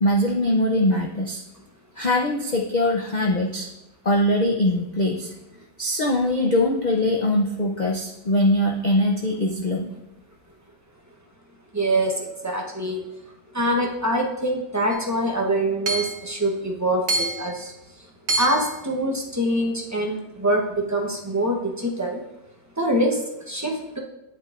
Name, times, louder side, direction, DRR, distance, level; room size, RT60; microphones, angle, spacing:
voice 1, 0.0-1.4 2.0-3.7 4.0-5.3 5.8-9.9, left 1 dB, 65° left, 1 dB, 0.4 m, -22 dB
voice 2, 11.7-13.0 13.5-18.1 18.4-22.2 22.8-24.0, right 1 dB, 15° right, 0 dB, 0.6 m, -24 dB
Hammer / Chink clink, 14.9-15.0 15.9-16.2 17.1-17.6 18.3-18.8, right 2 dB, 50° right, 0.9 m, -26 dB
8.6 x 8.4 x 2.5 m, 0.88 s
omnidirectional pair, 1.7 m